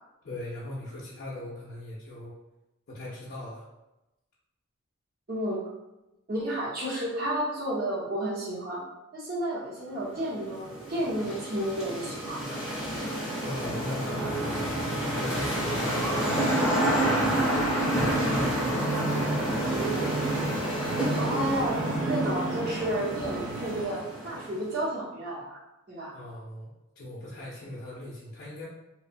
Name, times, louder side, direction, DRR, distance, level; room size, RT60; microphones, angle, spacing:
voice 1, 0.2-2.3 2.9-3.6 13.4-14.3 15.1-16.3 16.6-17.5 17.9-20.2 26.1-26.7 27.0-28.7, left 1 dB, 45° left, -7 dB, 0.4 m, -39 dB
voice 2, 5.3-5.6 6.3-8.8 9.1-12.4 21.2-21.8 22.1-25.6 25.9-26.1, right 1 dB, 45° right, -6 dB, 0.8 m, -31 dB
sound 1, 10.1-24.7, right 1 dB, ahead, 0.6 m, -29 dB
sound 2, 16.3-23.8, right 3 dB, 60° right, 0.3 m, -33 dB
2.8 x 2.0 x 2.5 m, 0.97 s
head